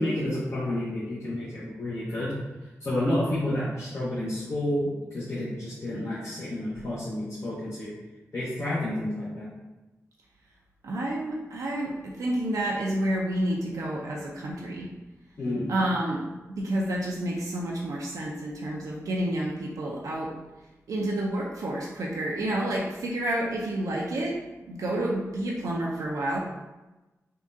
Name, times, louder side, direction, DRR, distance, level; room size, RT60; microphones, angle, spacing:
voice 1, 0.0-2.3 2.8-7.9 8.3-9.5 15.4-15.7, left 1 dB, 55° left, -10 dB, 0.8 m, -30 dB
voice 2, 10.8-14.9 15.7-16.2 16.5-20.3 20.9-24.4 24.7-26.4, right 1 dB, 90° right, -3 dB, 0.4 m, -29 dB
3.6 x 2.2 x 2.5 m, 1.1 s
cardioid pair, 60°, 6 cm